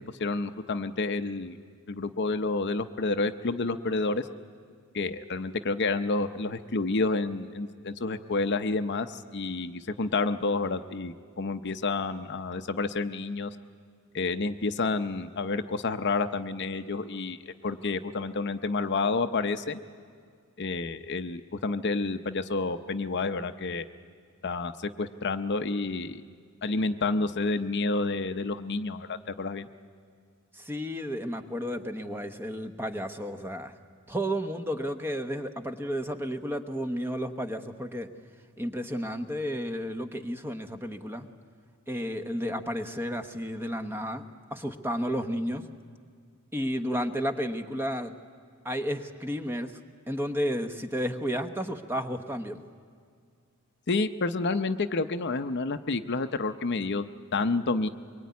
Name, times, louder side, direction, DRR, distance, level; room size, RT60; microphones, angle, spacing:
voice 1, 0.2-1.6 1.9-4.3 4.9-13.5 14.1-19.8 20.6-23.9 24.4-24.7 25.0-26.2 26.6-29.7 53.9-57.9, left 3 dB, 50° left, 9 dB, 0.7 m, -29 dB
voice 2, 30.5-33.8 34.1-38.1 38.6-41.3 41.9-44.2 44.5-45.6 46.5-48.1 48.6-49.8 50.1-52.6, equal, 10° right, 7 dB, 1.0 m, -32 dB
23.0 x 23.0 x 9.5 m, 2.1 s
head